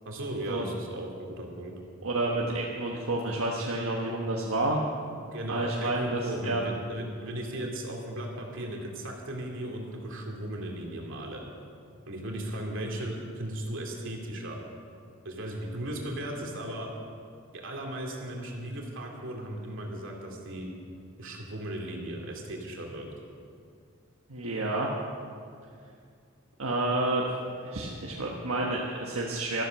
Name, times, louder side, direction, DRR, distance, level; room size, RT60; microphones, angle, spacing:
voice 1, 0.0-1.7 5.1-11.4 12.1-14.6 15.2-16.9 17.5-20.7 21.2-23.1, right 1 dB, 65° right, 0 dB, 2.6 m, -36 dB
voice 2, 2.0-4.8 5.5-6.6 24.3-24.9 26.6-27.2 27.6-29.6, right 2 dB, 80° right, -2 dB, 1.4 m, -29 dB
13.5 x 12.5 x 6.4 m, 2.3 s
head